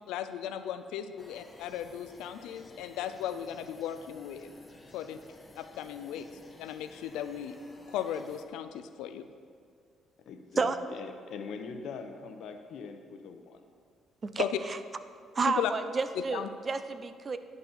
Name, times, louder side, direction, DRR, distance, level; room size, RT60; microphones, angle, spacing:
voice 1, 0.1-4.5 4.9-5.2 5.6-6.3 6.6-7.6 7.9-9.3 14.4-14.5 15.5-15.7 16.2-16.5, left 10 dB, 85° left, 9 dB, 0.4 m, -36 dB
sound 1, 1.2-8.4, left 2 dB, 20° left, 1.0 m, -54 dB
voice 2, 10.3-13.6, left 5 dB, 70° left, 6 dB, 0.8 m, -42 dB
voice 3, 14.2-14.8 15.3-17.4, right 4 dB, 35° right, 11 dB, 0.5 m, -31 dB
10.5 x 4.2 x 6.9 m, 2.2 s
cardioid pair, 90°, 0 cm